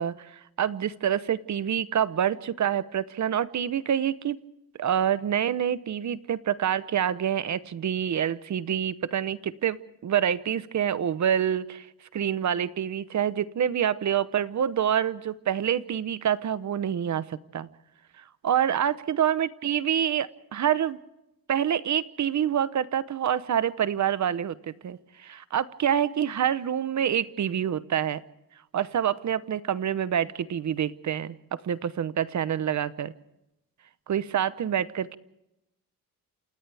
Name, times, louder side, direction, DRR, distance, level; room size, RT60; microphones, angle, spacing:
voice 1, 0.0-4.4 4.8-11.9 12.1-17.7 18.2-21.0 21.5-28.2 28.7-33.1 34.1-35.2, right 9 dB, 55° right, 16 dB, 0.9 m, -27 dB
28.5 x 28.0 x 3.4 m, 0.88 s
cardioid pair, 105°, 35 cm